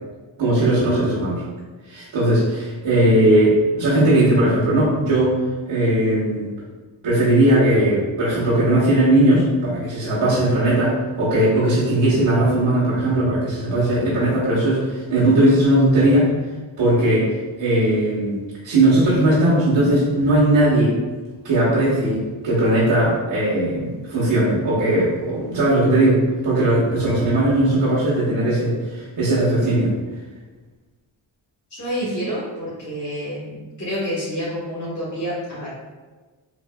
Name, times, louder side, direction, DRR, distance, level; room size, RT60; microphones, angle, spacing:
voice 1, 0.4-1.4 1.8-5.3 5.6-6.5 7.0-16.3 16.8-20.9 21.4-29.9, right 1 dB, 85° right, -11 dB, 1.1 m, -18 dB
voice 2, 31.7-35.7, equal, 35° left, -9 dB, 1.2 m, -28 dB
3.8 x 2.5 x 2.2 m, 1.3 s
cardioid pair, 65°, 48 cm